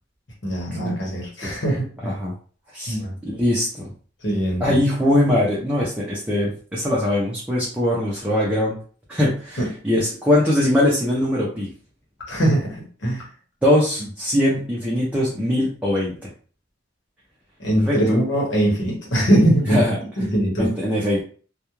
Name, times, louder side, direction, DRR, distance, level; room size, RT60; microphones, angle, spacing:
voice 1, 0.4-2.1 2.9-3.2 4.2-4.7 9.6-9.7 12.3-12.7 13.0-13.2 17.6-20.7, right 1 dB, 65° left, -2 dB, 1.0 m, -21 dB
voice 2, 2.0-2.3 2.7-3.0 3.2-3.9 4.6-8.8 9.1-11.7 13.6-16.2 17.8-18.2 19.6-20.0 20.6-21.2, left 1 dB, 5° right, -6 dB, 0.5 m, -21 dB
2.3 x 2.3 x 3.0 m, 0.41 s
head